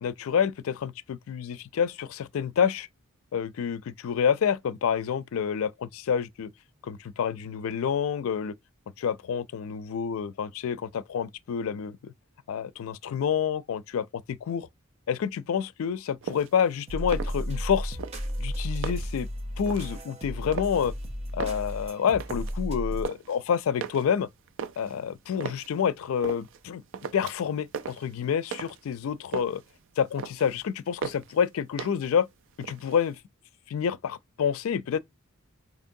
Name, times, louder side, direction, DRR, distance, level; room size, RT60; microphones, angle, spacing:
voice 1, 0.0-2.9 3.3-6.5 6.8-8.5 9.0-12.1 12.5-14.7 15.1-18.0 18.4-19.3 19.6-20.9 21.3-24.3 24.8-26.8 27.1-29.6 30.0-32.3 32.6-33.2 33.7-35.0, left 7 dB, 85° left, 0.4 m, -28 dB
sound 1, 16.2-16.6 17.0-17.7 18.0-19.2 19.7-20.0 20.5-21.0 21.3-22.6 22.8-23.4 23.8-25.7 26.2-26.6 26.9-27.5 27.7-28.9 29.2-29.7 30.0-30.6 31.0-31.4 31.8-32.2 32.5-33.2, right 6 dB, 70° right, 0.4 m, -38 dB
sound 2, 16.9-23.0, equal, 30° right, 0.7 m, -33 dB
4.5 x 2.8 x 2.6 m
head